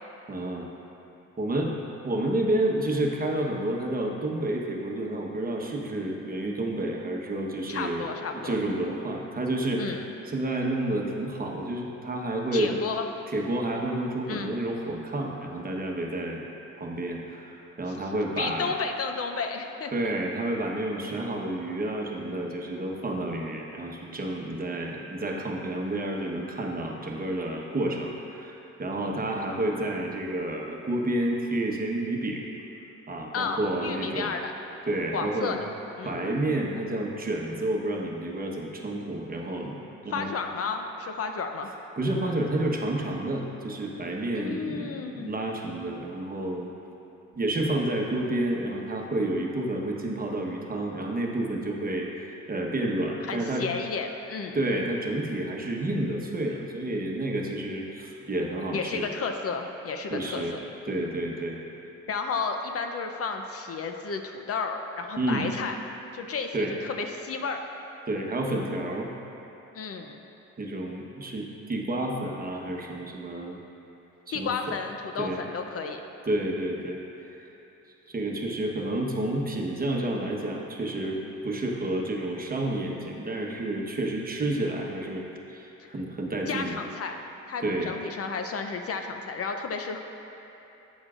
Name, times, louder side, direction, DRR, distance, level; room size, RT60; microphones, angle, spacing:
voice 1, 0.3-0.7 1.4-1.7 2.0-8.1 8.4-9.8 10.3-12.8 13.3-16.4 16.7-18.7 19.9-32.4 33.1-34.3 34.9-35.6 36.0-39.8 40.0-40.3 42.0-46.7 47.3-53.7 54.5-59.1 60.1-60.6 60.8-61.6 65.2-65.5 66.5-66.7 68.1-69.1 70.6-73.6 74.3-74.5 75.2-75.4 76.3-77.0 77.4-77.5 78.1-86.8 87.6-87.9, right 1 dB, 30° right, 0 dB, 1.1 m, -30 dB
voice 2, 7.7-8.6 9.8-10.1 12.5-13.1 14.3-14.5 17.9-18.0 18.4-19.9 33.3-34.5 35.1-35.6 36.0-36.2 40.1-41.7 44.3-45.3 53.3-54.6 58.7-60.4 62.1-65.8 66.1-67.6 69.7-70.2 74.3-76.0 86.5-87.2 87.5-90.0, left 5 dB, 50° left, 5 dB, 0.6 m, -32 dB
11.5 x 8.3 x 2.5 m, 3.0 s
cardioid pair, 90°, 30 cm